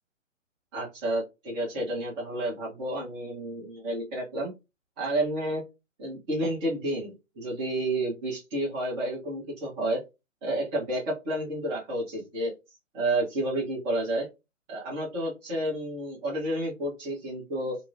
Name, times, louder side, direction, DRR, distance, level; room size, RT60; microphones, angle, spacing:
voice 1, 0.7-4.5 5.0-5.6 6.0-10.0 10.4-12.5 12.9-14.3 14.7-17.8, right 1 dB, 20° right, -5 dB, 1.1 m, -30 dB
2.9 x 2.2 x 2.6 m, 0.24 s
figure-of-eight pair, 130°, 39 cm